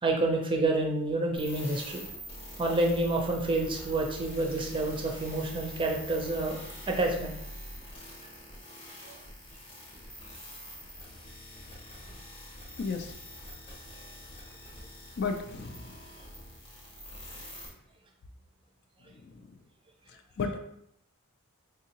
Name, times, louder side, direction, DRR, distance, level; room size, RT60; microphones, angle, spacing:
voice 1, 0.0-2.0 2.6-6.6 6.9-7.3 9.0-9.1, right 2 dB, 25° right, 1 dB, 0.5 m, -28 dB
sound 1, 1.4-17.7, equal, 25° left, 0.8 m, -45 dB
voice 2, 12.8-13.1 15.2-15.8 20.4-20.6, left 4 dB, 50° left, 5 dB, 0.4 m, -32 dB
3.5 x 2.7 x 2.8 m, 0.74 s
head